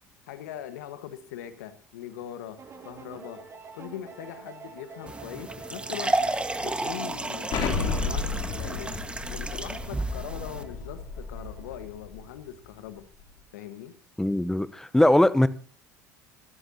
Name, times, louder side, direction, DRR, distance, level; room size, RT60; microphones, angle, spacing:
voice 1, 0.3-2.6 2.8-3.4 3.7-13.1 13.5-13.9, left 11 dB, 75° left, 11 dB, 1.5 m, -41 dB
sound 1, 2.6-12.0, right 4 dB, 35° right, 7.3 m, -47 dB
sound 2, 5.1-10.6, right 2 dB, 10° right, 1.5 m, -32 dB
Explosion, 7.5-12.2, left 4 dB, 60° left, 3.1 m, -32 dB
voice 2, 14.2-15.5, left 1 dB, 5° left, 16 dB, 0.8 m, -21 dB
27.0 x 13.0 x 2.8 m, 0.43 s
hypercardioid pair, 70°, 9 cm